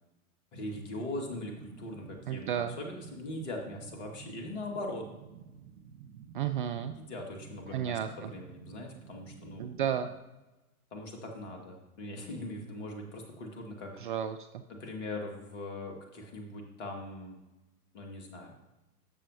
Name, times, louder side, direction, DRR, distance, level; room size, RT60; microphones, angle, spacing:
voice 1, 0.5-5.1 6.9-9.7 10.9-13.9 14.7-17.4 17.9-18.5, left 2 dB, 50° left, 2 dB, 2.2 m, -41 dB
sound 1, 0.5-10.2, right 7 dB, 85° right, 0.9 m, -51 dB
voice 2, 2.3-2.7 6.3-6.9 7.7-8.3 9.6-10.1 14.0-14.4, right 9 dB, 35° right, 9 dB, 0.4 m, -32 dB
12.5 x 7.5 x 2.9 m, 1.0 s
figure-of-eight pair, 105°, 45 cm